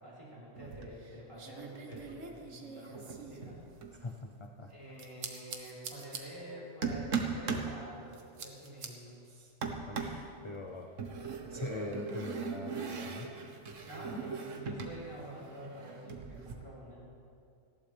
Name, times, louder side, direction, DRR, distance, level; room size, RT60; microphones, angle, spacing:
voice 1, 0.0-3.6 4.7-9.1 13.8-17.0, right 1 dB, 20° right, -7 dB, 4.7 m, -48 dB
sound 1, 0.6-1.1 1.4-4.0 5.0-6.2 6.8-7.7 8.1-8.9 9.6-10.2 11.0-15.0 15.2-16.5, right 5 dB, 65° right, 1.5 m, -39 dB
voice 2, 3.9-4.7 9.2-10.9 11.5-13.3, left 2 dB, 30° left, 2 dB, 0.5 m, -43 dB
19.0 x 15.0 x 3.4 m, 2.4 s
omnidirectional pair, 1.4 m